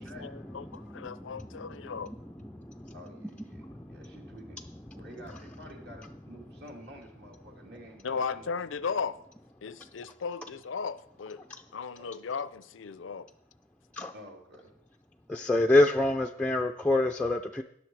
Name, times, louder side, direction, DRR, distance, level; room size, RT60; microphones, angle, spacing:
voice 1, 0.0-2.1 8.0-9.2 9.6-11.4 11.7-13.3, left 5 dB, 80° left, 0.5 m, -36 dB
voice 2, 0.7-4.4 4.9-5.1 13.9-14.1 15.3-17.6, left 2 dB, 5° left, 0.4 m, -29 dB
voice 3, 2.9-4.6 4.9-8.5 8.7-8.8 11.9-12.1 14.1-14.7, equal, 60° right, 2.5 m, -49 dB
18.0 x 6.4 x 4.7 m
head